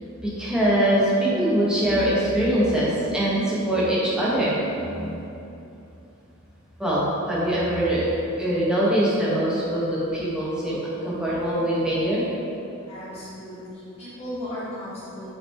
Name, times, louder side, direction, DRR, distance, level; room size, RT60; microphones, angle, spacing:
voice 1, 0.2-5.3 6.8-12.3, right 1 dB, 5° right, -8 dB, 1.3 m, -23 dB
voice 2, 12.9-15.3, left 1 dB, 30° left, -14 dB, 1.5 m, -36 dB
7.3 x 3.9 x 3.7 m, 2.8 s
head